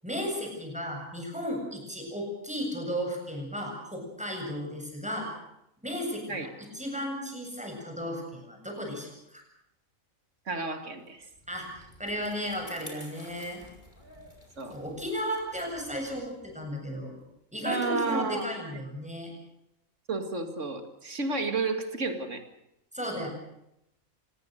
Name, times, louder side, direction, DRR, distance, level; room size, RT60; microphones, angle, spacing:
voice 1, 0.0-5.3 5.8-9.4 11.5-13.6 14.7-17.1 17.5-19.3 22.9-23.3, equal, 5° right, 1 dB, 7.5 m, -34 dB
voice 2, 10.5-11.3 14.6-14.8 17.7-18.5 20.1-22.4, right 3 dB, 60° right, 7 dB, 2.7 m, -31 dB
Bicycle, 11.1-17.8, left 1 dB, 35° left, 5.7 m, -52 dB
25.5 x 20.5 x 6.7 m, 0.83 s
omnidirectional pair, 1.4 m